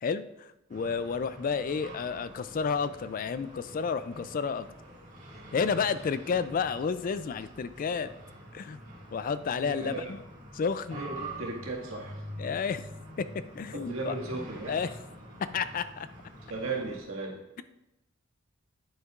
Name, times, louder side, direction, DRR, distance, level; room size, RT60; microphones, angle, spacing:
voice 1, 0.0-4.7 5.5-8.1 8.5-8.8 9.1-10.2 10.5-11.0 12.4-12.9 13.2-14.1 14.7-14.9 15.4-16.1, left 6 dB, 40° left, 13 dB, 0.3 m, -31 dB
sound 1, 0.7-17.0, right 1 dB, 40° right, 1.9 m, -46 dB
voice 2, 9.6-10.2 10.9-12.2 13.7-14.8 16.5-17.4, right 3 dB, 85° right, -2 dB, 1.8 m, -36 dB
9.6 x 9.5 x 2.4 m, 0.94 s
head